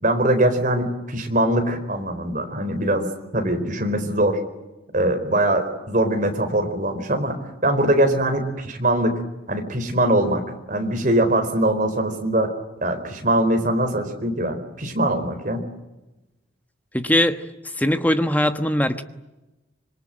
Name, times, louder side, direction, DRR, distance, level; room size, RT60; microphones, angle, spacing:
voice 1, 0.0-4.4 4.9-7.4 7.6-9.2 9.5-12.5 12.8-15.7, right 1 dB, 45° right, 5 dB, 4.3 m, -22 dB
voice 2, 16.9-17.4 17.8-19.0, left 1 dB, 10° left, 9 dB, 1.2 m, -20 dB
26.0 x 23.0 x 9.0 m, 1.0 s
head